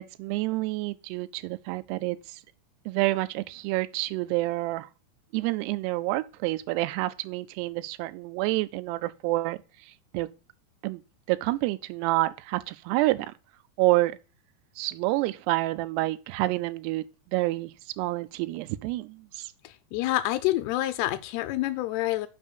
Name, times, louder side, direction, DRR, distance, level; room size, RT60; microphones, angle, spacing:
voice 1, 0.0-2.4 2.9-4.9 5.3-9.6 10.1-10.3 10.8-11.0 11.3-13.3 13.8-14.2 14.8-17.7 18.0-19.5, right 19 dB, 85° right, 2.6 m, -28 dB
voice 2, 19.6-22.3, left 15 dB, 85° left, 2.6 m, -27 dB
6.2 x 5.4 x 6.7 m
omnidirectional pair, 4.8 m